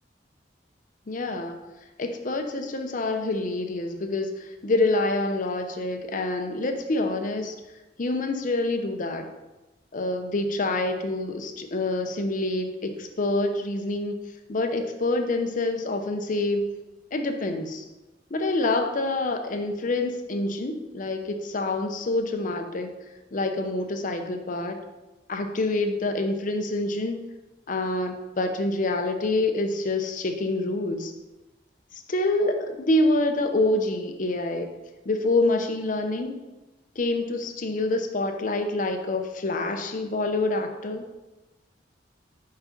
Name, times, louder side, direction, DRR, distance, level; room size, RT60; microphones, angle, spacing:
voice 1, 1.1-1.6 2.0-7.6 8.0-9.3 9.9-14.2 14.5-16.6 17.1-17.8 18.3-22.9 23.3-24.8 25.3-27.2 27.7-31.1 31.9-34.7 35.1-36.4 37.0-41.1, left 2 dB, 45° left, 6 dB, 0.7 m, -26 dB
5.1 x 4.9 x 5.1 m, 1.1 s
head